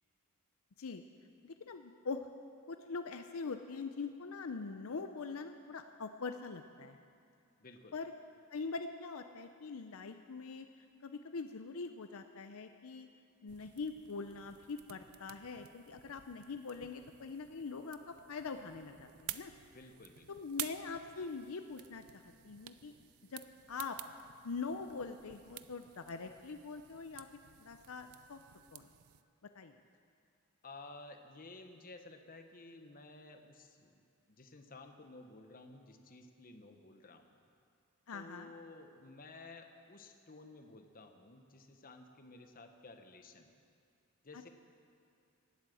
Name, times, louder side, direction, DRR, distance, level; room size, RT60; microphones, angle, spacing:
voice 1, 1.4-2.3 2.7-7.0 7.9-8.1 8.5-10.7 11.0-13.1 13.4-19.5 20.3-22.9 23.3-23.4 23.7-24.0 24.4-27.3 27.6-28.4 28.7-28.9 29.6-29.8 38.1-38.5 44.3-44.5, left 4 dB, 70° left, 7 dB, 0.6 m, -43 dB
voice 2, 7.6-7.9 19.7-20.3 30.6-37.3 38.1-43.5 44.2-44.5, left 2 dB, 40° left, 6 dB, 1.0 m, -54 dB
sound 1, 13.5-29.2, right 13 dB, 80° right, 0.5 m, -51 dB
18.5 x 8.3 x 7.6 m, 2.4 s
head